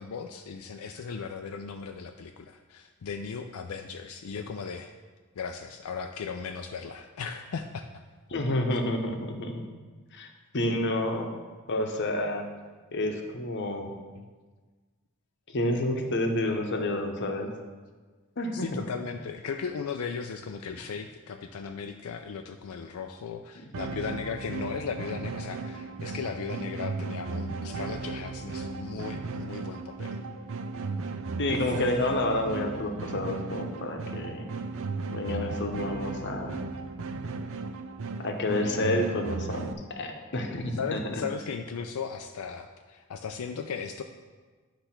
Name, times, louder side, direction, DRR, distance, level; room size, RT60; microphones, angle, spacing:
voice 1, 0.0-4.9 5.4-7.9 14.2-14.3 17.4-17.5 18.5-30.2 40.7-44.0, left 5 dB, 85° left, 5 dB, 0.4 m, -37 dB
voice 2, 8.3-9.7 10.1-10.3 10.5-11.3 11.7-12.5 12.9-13.9 15.5-17.5 18.4-18.7 31.4-34.5 35.1-36.6 38.2-41.2, left 1 dB, 55° left, 4 dB, 0.9 m, -29 dB
sound 1, 23.7-39.7, right 4 dB, 65° right, 0.5 m, -36 dB
9.9 x 3.3 x 5.8 m, 1.4 s
head